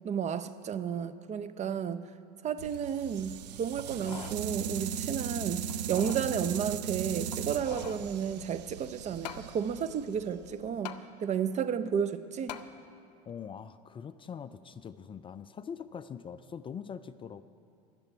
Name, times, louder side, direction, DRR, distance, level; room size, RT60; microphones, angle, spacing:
voice 1, 0.0-2.0 2.4-12.6, right 7 dB, 35° right, 12 dB, 0.6 m, -32 dB
sound 1, 2.6-10.7, right 9 dB, 80° right, 0.6 m, -38 dB
sound 2, 3.8-4.4 4.9-5.0 5.7-6.3 7.3-8.1 9.2-9.5 10.8-11.0 12.5-12.7 13.3-13.4, left 10 dB, 80° left, 0.6 m, -43 dB
voice 2, 13.3-17.4, left 7 dB, 25° left, 12 dB, 0.4 m, -43 dB
12.0 x 6.9 x 9.6 m, 2.4 s
hypercardioid pair, 85°, 21 cm